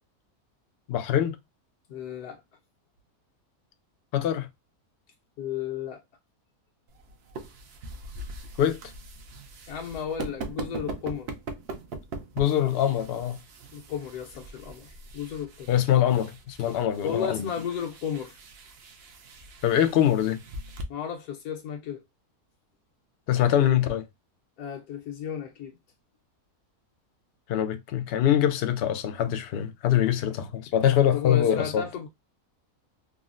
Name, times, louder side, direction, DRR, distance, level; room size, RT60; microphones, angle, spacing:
voice 1, 0.9-1.4 4.1-4.5 8.6-8.8 12.4-13.4 15.7-17.4 19.6-20.4 23.3-24.0 27.5-31.8, left 10 dB, 70° left, 0.5 m, -23 dB
voice 2, 1.9-2.4 5.4-6.0 9.7-11.3 13.7-15.7 17.0-18.4 20.9-22.0 24.6-25.8 31.1-32.1, left 8 dB, 85° left, 1.3 m, -33 dB
sound 1, 6.9-20.8, right 3 dB, 60° right, 0.7 m, -42 dB
3.7 x 2.1 x 2.4 m
omnidirectional pair, 1.6 m